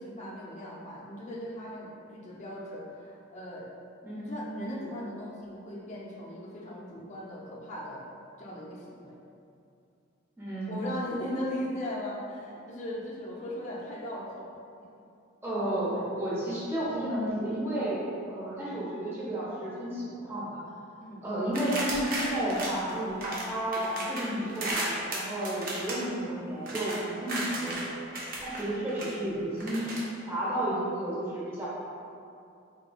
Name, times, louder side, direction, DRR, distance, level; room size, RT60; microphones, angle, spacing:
voice 1, 0.0-3.7 4.3-8.0 8.4-9.2 10.7-14.5 21.0-21.2, left 1 dB, 35° left, -4 dB, 0.4 m, -38 dB
voice 2, 4.0-4.3 10.4-10.8 15.4-20.6 21.2-28.0 28.4-29.9 30.3-31.7, right 1 dB, 10° right, -9 dB, 0.7 m, -32 dB
sound 1, 21.5-23.5 23.7-27.9 28.1-29.1 29.6-30.0, right 1 dB, 45° right, 0.5 m, -35 dB
3.4 x 3.0 x 2.3 m, 2.5 s
head